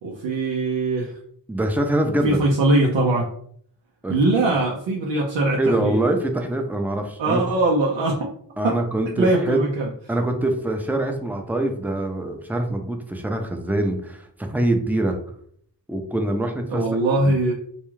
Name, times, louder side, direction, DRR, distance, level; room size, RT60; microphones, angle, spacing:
voice 1, 0.0-1.1 2.2-3.3 4.1-6.0 7.2-8.1 8.6-8.8 9.2-9.9 16.7-17.5, right 2 dB, 90° right, -2 dB, 0.5 m, -21 dB
voice 2, 1.5-2.4 4.0-4.2 5.6-7.4 8.6-9.6 10.1-15.2 15.9-16.8 17.3-17.4, right 1 dB, 5° right, 4 dB, 0.5 m, -24 dB
2.3 x 2.3 x 3.1 m, 0.63 s
cardioid pair, 45°, 44 cm